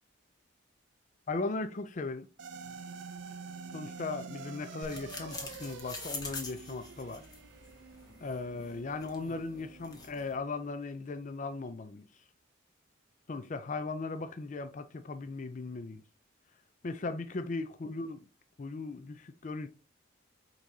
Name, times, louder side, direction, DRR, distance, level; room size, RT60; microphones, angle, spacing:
voice 1, 1.3-2.3 3.7-7.3 8.2-12.0 13.3-16.0 16.8-18.3 18.6-19.7, left 3 dB, 40° left, 0.4 m, -37 dB
sound 1, 2.4-10.9, right 5 dB, 60° right, 0.4 m, -48 dB
sound 2, 4.8-10.4, left 3 dB, 20° left, 0.8 m, -45 dB
4.7 x 3.9 x 2.7 m
head